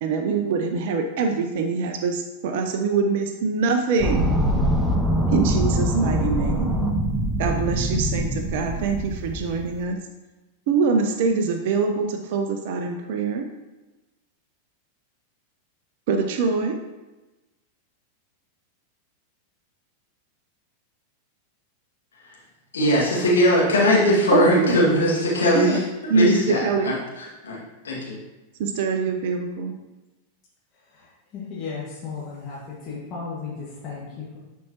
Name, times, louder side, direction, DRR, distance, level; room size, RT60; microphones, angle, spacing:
voice 1, 0.0-4.3 5.3-6.7 7.4-10.0 10.7-13.5 16.1-16.8 24.3-24.8 25.5-25.8 26.1-27.0 28.6-29.7, right 4 dB, 50° right, 5 dB, 0.6 m, -24 dB
sound 1, 4.0-9.8, equal, 10° right, 0.9 m, -23 dB
voice 2, 22.7-25.8 26.1-26.9 27.4-28.2, equal, 70° left, -5 dB, 2.0 m, -20 dB
voice 3, 30.7-34.4, left 5 dB, 30° left, -7 dB, 1.8 m, -35 dB
10.5 x 4.6 x 2.9 m, 1.1 s
figure-of-eight pair, 90°, 0 cm